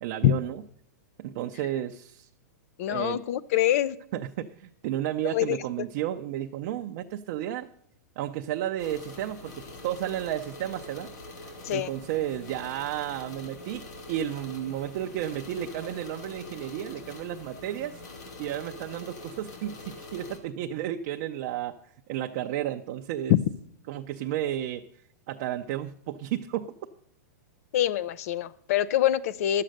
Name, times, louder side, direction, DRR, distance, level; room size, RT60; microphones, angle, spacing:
voice 1, 0.0-0.6 1.2-2.3 2.9-3.2 4.1-7.7 8.2-11.1 11.7-18.0 18.4-21.8 22.1-23.3 23.9-24.8 25.3-26.7, right 12 dB, 45° right, 3 dB, 0.5 m, -32 dB
voice 2, 2.8-4.0 5.3-5.6 11.6-11.9 23.3-23.4 27.7-29.6, left 12 dB, 55° left, 18 dB, 0.6 m, -25 dB
sound 1, 8.8-20.4, left 2 dB, 70° left, 2.7 m, -44 dB
11.5 x 7.6 x 6.5 m, 0.67 s
hypercardioid pair, 150°, 10 cm